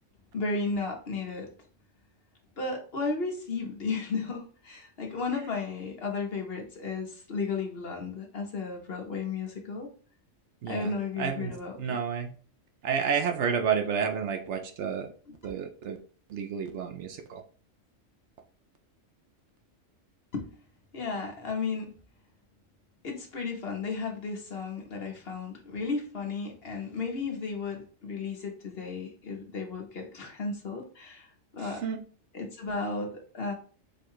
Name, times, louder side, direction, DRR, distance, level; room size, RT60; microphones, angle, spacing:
voice 1, 0.3-1.5 2.6-9.9 10.7-12.0 15.3-15.4 20.3-20.5 20.9-21.9 23.0-31.8 32.3-33.5, left 4 dB, 50° left, 1 dB, 1.1 m, -34 dB
voice 2, 10.6-10.9 11.2-12.3 12.8-15.1 15.4-16.0 16.3-17.4 31.6-32.0, right 7 dB, 70° right, 5 dB, 0.8 m, -30 dB
4.6 x 2.3 x 4.5 m, 0.41 s
omnidirectional pair, 1.3 m